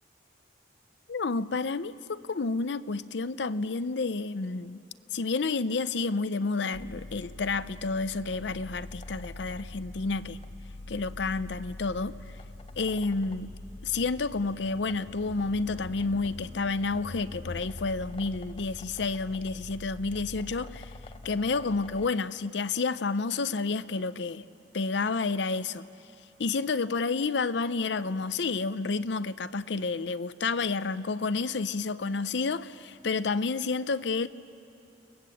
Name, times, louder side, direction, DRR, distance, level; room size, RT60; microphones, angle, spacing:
voice 1, 1.1-4.8 5.1-10.4 10.9-12.2 12.8-13.5 13.8-20.9 21.2-24.4 24.7-25.9 26.4-34.3, left 4 dB, 70° left, 0.6 m, -30 dB
sound 1, 6.7-22.1, left 2 dB, 30° left, 0.7 m, -44 dB
29.5 x 20.0 x 7.8 m
head